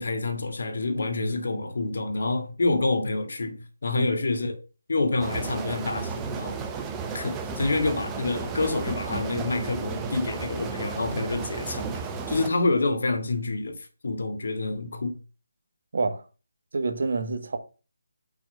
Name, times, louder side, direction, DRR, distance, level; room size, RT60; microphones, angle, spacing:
voice 1, 0.0-4.6 4.9-6.6 7.1-11.9 12.3-15.2, left 3 dB, 65° left, 1.8 m, -27 dB
sound 1, 5.2-12.5, right 5 dB, 10° right, 0.7 m, -33 dB
voice 2, 16.7-17.6, right 3 dB, 60° right, 1.3 m, -27 dB
6.1 x 5.8 x 5.4 m
figure-of-eight pair, 160°, 0 cm